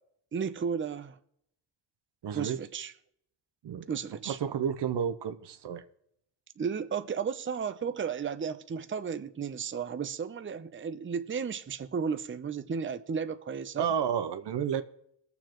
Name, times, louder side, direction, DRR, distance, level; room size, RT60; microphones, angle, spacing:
voice 1, 0.3-1.2 2.3-2.9 3.9-4.4 6.6-13.9, right 6 dB, 30° right, 0.7 m, -34 dB
voice 2, 2.2-2.6 3.6-3.8 4.3-5.8 13.8-14.8, right 8 dB, 70° right, 0.8 m, -31 dB
21.0 x 7.1 x 3.0 m
cardioid pair, 60°, 43 cm